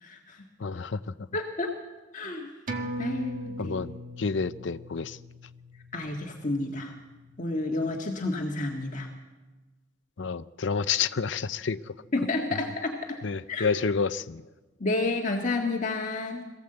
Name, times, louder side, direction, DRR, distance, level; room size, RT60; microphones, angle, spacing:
voice 1, 0.0-0.4 1.3-1.8 2.1-2.5 3.0-3.8 5.9-7.0 7.4-9.1 12.1-13.2 13.5-13.7 14.8-16.5, left 2 dB, 40° left, 0 dB, 1.7 m, -30 dB
voice 2, 0.6-1.0 3.6-5.2 10.2-11.9 13.2-14.4, left 5 dB, 70° left, 14 dB, 0.6 m, -29 dB
sound 1, 2.7-7.6 8.0-8.1, right 1 dB, 40° right, 1.7 m, -39 dB
22.0 x 15.5 x 7.9 m, 1.3 s
head